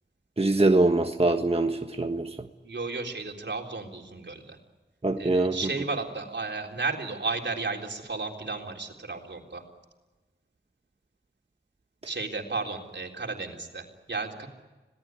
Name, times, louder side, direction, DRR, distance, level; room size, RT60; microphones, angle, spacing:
voice 1, 0.4-2.3 5.0-5.6, right 2 dB, 30° right, 5 dB, 1.4 m, -23 dB
voice 2, 2.6-4.6 5.2-9.6 12.0-14.5, right 3 dB, 75° right, 2 dB, 3.8 m, -33 dB
26.0 x 18.5 x 9.6 m, 1.2 s
wide cardioid pair, 55°, 19 cm